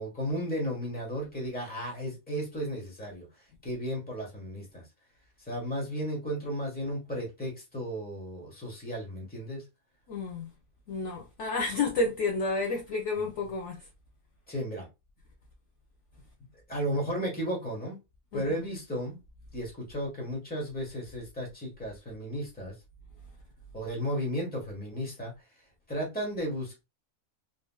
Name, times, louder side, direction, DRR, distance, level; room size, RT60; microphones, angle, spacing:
voice 1, 0.0-3.3 3.6-4.9 5.5-9.6 14.5-14.9 16.7-18.0 18.3-19.2 19.5-22.7 23.7-25.3 25.9-26.8, equal, 5° left, 1.1 m, -34 dB
voice 2, 10.1-10.5 10.9-13.9 18.3-18.6, left 3 dB, 60° left, 0.8 m, -31 dB
3.6 x 2.5 x 2.2 m
omnidirectional pair, 1.6 m